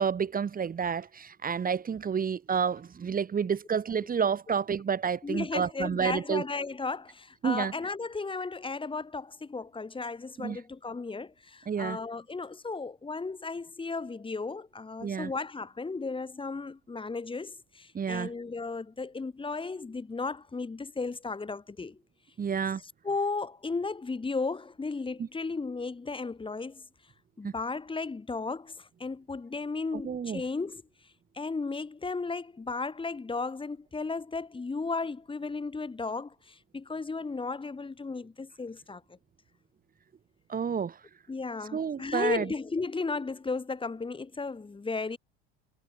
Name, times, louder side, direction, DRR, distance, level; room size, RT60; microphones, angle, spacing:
voice 1, 0.0-6.4 7.4-7.7 10.4-10.6 11.7-12.0 15.0-15.3 17.9-18.3 22.4-22.8 27.4-27.5 29.9-30.4 40.5-41.0 41.7-42.5, right 7 dB, 25° right, 3.8 m, -30 dB
voice 2, 5.2-22.0 23.0-26.8 27.4-30.8 31.3-39.0 41.3-45.2, left 4 dB, 15° left, 7.8 m, -35 dB
supercardioid pair, 105°, 31 cm